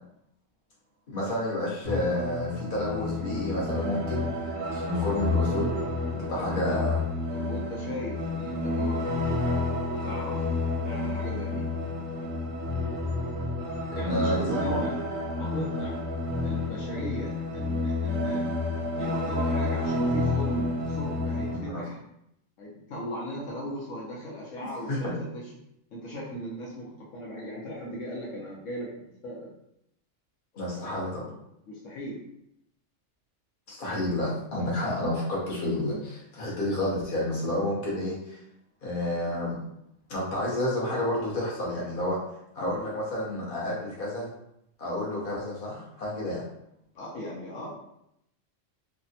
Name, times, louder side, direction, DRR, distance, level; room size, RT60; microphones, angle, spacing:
voice 1, 1.1-4.3 4.7-5.8 6.1-7.0 13.9-14.8 21.5-21.8 24.9-25.1 30.6-31.3 33.7-38.4 38.8-39.6 40.1-42.2 42.5-44.3 44.8-46.5, left 1 dB, 45° left, -5 dB, 1.0 m, -30 dB
sound 1, 1.8-21.6, left 2 dB, 80° right, 1.1 m, -30 dB
voice 2, 6.4-6.8 7.3-9.1 9.9-10.5 10.8-11.7 13.9-14.9 15.4-16.0 16.4-18.5 19.0-22.0 22.6-25.4 25.9-29.5 30.7-31.0 31.7-32.2 46.9-47.7, equal, 75° left, -4 dB, 1.0 m, -38 dB
3.3 x 2.0 x 2.6 m, 0.78 s
omnidirectional pair, 1.3 m